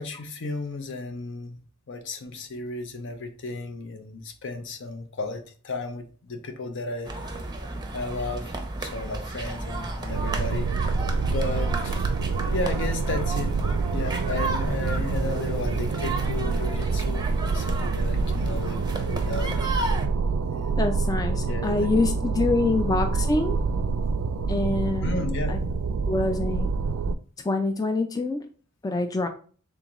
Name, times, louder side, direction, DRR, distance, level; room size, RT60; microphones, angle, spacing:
voice 1, 0.0-1.6 1.9-7.4 7.9-8.5 8.8-10.7 11.2-12.1 12.5-13.5 13.9-17.3 17.5-19.5 20.5-20.8 21.5-21.9 25.0-25.6, left 3 dB, 60° left, 0.7 m, -34 dB
sound 1, 7.0-20.1, right 2 dB, 20° right, 0.6 m, -33 dB
sound 2, 10.1-27.1, right 4 dB, 75° right, 0.3 m, -27 dB
voice 2, 20.8-23.6 24.5-25.6 26.1-26.7 27.4-28.4 28.8-29.3, left 3 dB, 20° left, 0.3 m, -25 dB
3.8 x 3.5 x 3.0 m
head